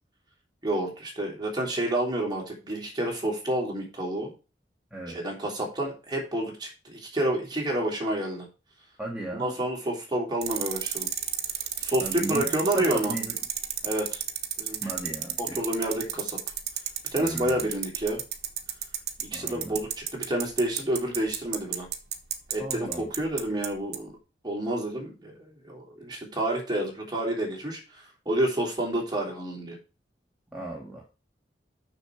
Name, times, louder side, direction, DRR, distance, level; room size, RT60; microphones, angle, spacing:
voice 1, 0.6-4.3 5.1-8.5 9.4-11.1 11.8-13.1 13.8-14.2 14.6-14.8 15.4-16.4 17.1-18.2 19.2-21.9 22.5-24.1 24.4-27.8 28.2-29.8, right 1 dB, 25° right, 0 dB, 3.3 m, -29 dB
voice 2, 9.0-9.5 12.0-12.4 12.7-13.3 14.8-15.6 17.2-17.6 19.3-19.8 22.6-23.1 30.5-31.0, right 1 dB, 5° right, -4 dB, 1.9 m, -35 dB
sound 1, 10.4-23.7 23.9-24.0, right 11 dB, 60° right, 1.2 m, -31 dB
6.8 x 6.4 x 5.9 m, 0.31 s
head